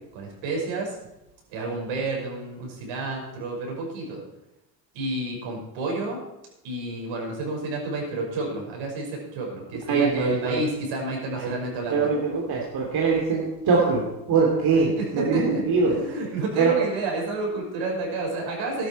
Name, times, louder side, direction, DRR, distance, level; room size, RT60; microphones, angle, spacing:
voice 1, 0.1-1.0 1.5-4.2 4.9-6.2 6.6-12.1 14.9-18.9, right 2 dB, 65° right, 0 dB, 6.0 m, -30 dB
voice 2, 9.9-10.6 11.3-11.5 11.9-16.0 16.6-16.8, right 4 dB, 45° right, -2 dB, 3.0 m, -23 dB
12.5 x 12.0 x 4.7 m, 0.91 s
hypercardioid pair, 75°, 50 cm